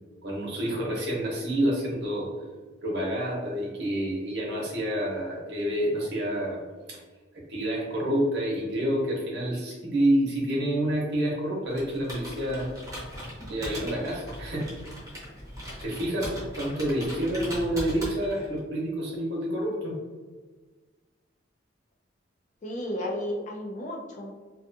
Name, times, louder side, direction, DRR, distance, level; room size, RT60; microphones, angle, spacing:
voice 1, 0.2-2.3 2.8-6.6 6.9-7.0 7.5-12.7 13.5-14.7 15.8-19.9, right 1 dB, 60° right, -3 dB, 0.8 m, -28 dB
Computer keyboard, 11.7-18.6, equal, 15° right, 0.7 m, -39 dB
voice 2, 22.6-24.3, left 1 dB, 40° left, 0 dB, 0.4 m, -33 dB
2.5 x 2.3 x 2.5 m, 1.4 s
head